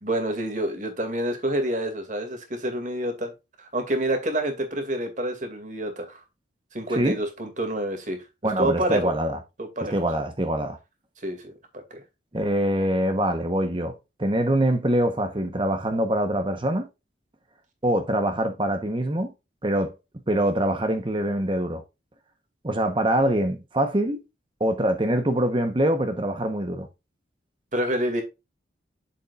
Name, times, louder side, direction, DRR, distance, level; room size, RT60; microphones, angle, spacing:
voice 1, 0.0-3.3 3.6-6.2 6.7-8.2 8.6-9.1 9.6-9.9 11.2-12.0 27.7-28.2, right 1 dB, 40° right, 2.2 m, -28 dB
voice 2, 8.4-9.4 9.8-10.8 12.3-13.9 14.2-16.9 17.8-19.3 19.6-19.9 20.3-21.8 22.6-24.2 24.6-26.9, right 1 dB, 25° right, 0.9 m, -24 dB
8.3 x 7.1 x 2.4 m
head